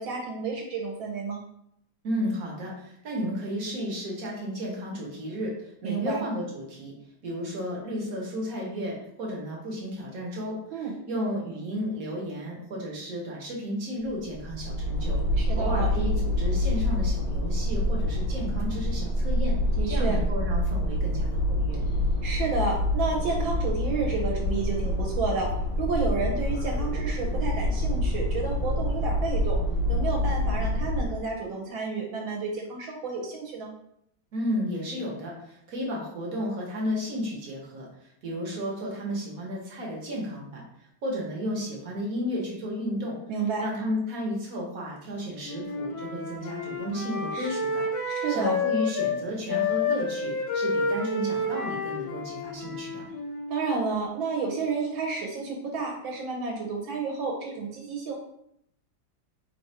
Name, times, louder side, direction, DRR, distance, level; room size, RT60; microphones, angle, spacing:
voice 1, 0.0-1.4 5.8-6.2 10.7-10.9 15.4-15.9 19.8-20.2 22.2-25.5 25.8-29.6 29.9-33.7 43.3-43.7 47.3-47.5 48.1-48.5 53.5-58.2, right 4 dB, 80° right, -1 dB, 1.4 m, -30 dB
voice 2, 2.0-6.9 7.2-15.2 15.6-19.5 19.9-21.8 34.3-40.6 41.0-43.2 43.6-53.0, equal, 55° right, -2 dB, 1.1 m, -33 dB
sound 1, 14.0-31.3, left 1 dB, 70° left, 0.9 m, -27 dB
Wind instrument woodwind instrument, 45.4-49.2 49.5-53.6, left 3 dB, 85° left, 1.4 m, -30 dB
3.3 x 2.3 x 4.1 m, 0.74 s
omnidirectional pair, 2.2 m